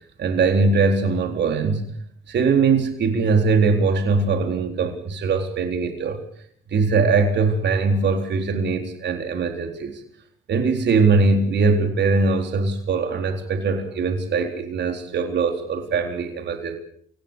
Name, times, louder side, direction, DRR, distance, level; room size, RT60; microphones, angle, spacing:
voice 1, 0.2-1.9 2.3-6.2 6.7-10.0 10.5-16.8, right 4 dB, 60° right, 4 dB, 4.1 m, -21 dB
28.0 x 17.5 x 7.1 m, 0.63 s
cardioid pair, 90°, 20 cm